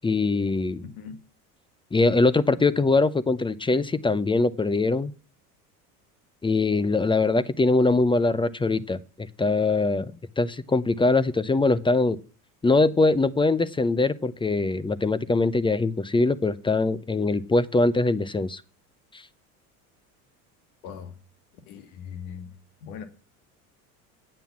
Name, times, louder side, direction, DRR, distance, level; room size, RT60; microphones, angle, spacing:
voice 1, 0.0-0.9 1.9-5.1 6.4-12.2 12.6-18.6 19.1-19.2, left 3 dB, 10° left, 0.6 m, -22 dB
voice 2, 20.8-21.1 21.7-22.5 22.8-23.1, left 7 dB, 70° left, 2.1 m, -39 dB
9.1 x 7.7 x 7.1 m
hypercardioid pair, 90°, 45 cm